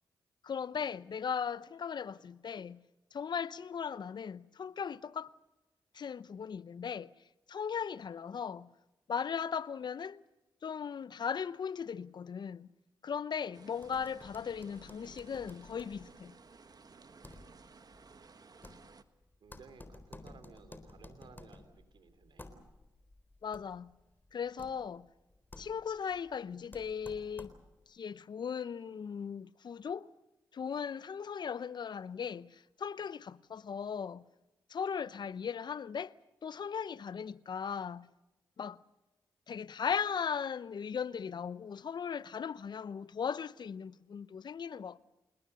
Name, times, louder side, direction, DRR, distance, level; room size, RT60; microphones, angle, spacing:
voice 1, 0.4-2.8 3.1-5.3 5.9-7.1 7.5-8.7 9.1-10.2 10.6-12.7 13.0-16.3 23.4-23.9 24.3-25.1 25.6-27.5 27.9-30.1 30.5-34.2 34.7-36.1 36.4-38.1 38.6-38.8 39.5-45.0, left 7 dB, 60° left, 0.7 m, -38 dB
sound 1, 13.5-19.0, right 4 dB, 50° right, 1.5 m, -57 dB
sound 2, 13.8-27.9, left 2 dB, 25° left, 3.9 m, -55 dB
voice 2, 19.4-22.5, right 5 dB, 70° right, 3.1 m, -57 dB
28.5 x 19.5 x 6.8 m
supercardioid pair, 45°, 9 cm